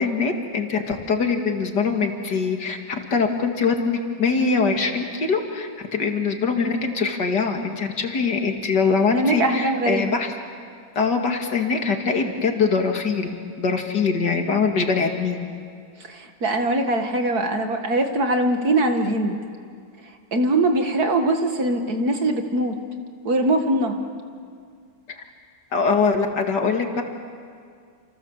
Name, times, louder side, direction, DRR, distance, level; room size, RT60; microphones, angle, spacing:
voice 1, 0.0-2.8 3.1-10.3 11.0-15.5 25.7-27.0, left 5 dB, 65° left, 4 dB, 2.7 m, -23 dB
voice 2, 9.1-10.0 16.1-19.4 20.3-22.8 23.2-24.0, right 1 dB, 55° right, 5 dB, 2.3 m, -22 dB
29.0 x 27.5 x 7.3 m, 2.2 s
omnidirectional pair, 2.0 m